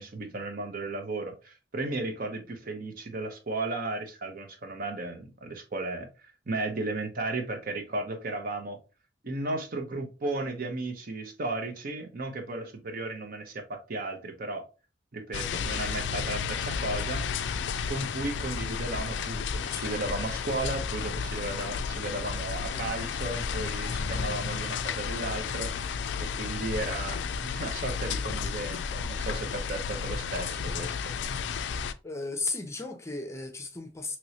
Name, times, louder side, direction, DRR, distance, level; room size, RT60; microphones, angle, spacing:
voice 1, 0.0-6.1 6.5-8.8 9.2-14.6 15.1-17.2 17.9-25.7 26.2-31.0 31.2-31.3, right 2 dB, 55° right, 0.7 m, -35 dB
sound 1, 15.3-31.9, left 6 dB, 75° left, 0.3 m, -32 dB
voice 2, 32.0-34.2, left 3 dB, 15° left, 0.5 m, -34 dB
3.0 x 3.0 x 2.7 m
head